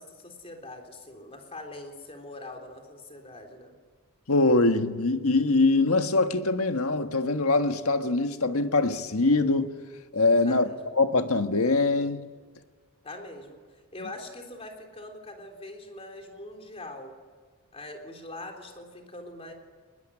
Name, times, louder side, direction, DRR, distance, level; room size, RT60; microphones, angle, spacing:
voice 1, 0.0-3.8 10.4-10.9 13.0-17.1 17.7-19.5, left 2 dB, 25° left, 3.7 m, -43 dB
voice 2, 4.3-9.7 10.1-10.7 10.9-12.2, left 3 dB, 80° left, 1.6 m, -23 dB
22.5 x 21.0 x 9.9 m
head